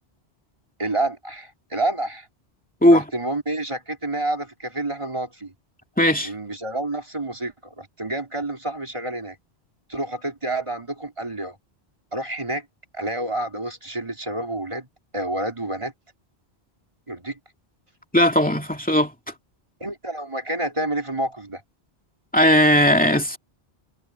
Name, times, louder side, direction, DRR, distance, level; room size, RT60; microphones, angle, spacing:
voice 1, 0.8-2.3 2.9-5.5 6.2-9.4 9.9-11.6 12.1-12.7 12.9-14.9 15.1-15.9 17.1-17.4 19.8-21.6, right 2 dB, 30° right, 3.0 m, -29 dB
voice 2, 6.0-6.3 18.1-19.1 22.3-23.4, equal, 10° left, 2.2 m, -17 dB
omnidirectional pair, 1.1 m